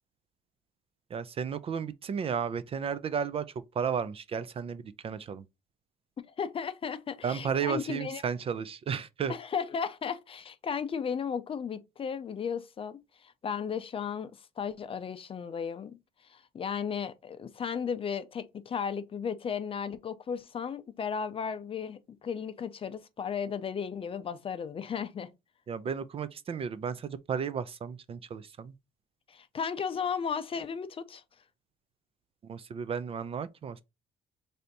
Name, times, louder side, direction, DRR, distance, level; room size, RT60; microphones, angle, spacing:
voice 1, 1.1-3.5 3.7-5.4 7.2-9.3 25.7-28.7 32.4-33.8, right 7 dB, 35° right, 0.3 m, -33 dB
voice 2, 6.4-8.2 9.3-25.3 29.3-31.2, left 6 dB, 35° left, 0.5 m, -35 dB
3.4 x 2.7 x 3.9 m
cardioid pair, 110°, 17 cm